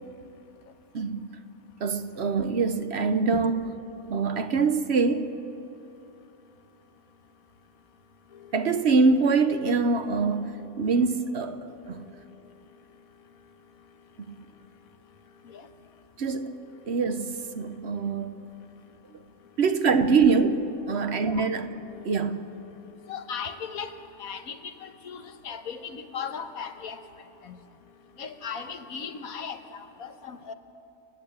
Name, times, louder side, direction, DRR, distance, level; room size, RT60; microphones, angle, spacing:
voice 1, 0.9-1.4 1.8-3.7 4.1-5.4 8.5-12.0 14.3-14.4 16.2-16.6 16.9-18.5 19.6-21.7 22.0-22.5, right 4 dB, 55° right, 1.0 m, -24 dB
voice 2, 8.3-8.7 10.8-10.9 15.4-15.7 21.2-21.5 21.8-22.1 23.1-27.0 27.4-27.6 28.2-30.5, left 6 dB, 85° left, 1.5 m, -38 dB
29.0 x 10.5 x 8.7 m
omnidirectional pair, 1.5 m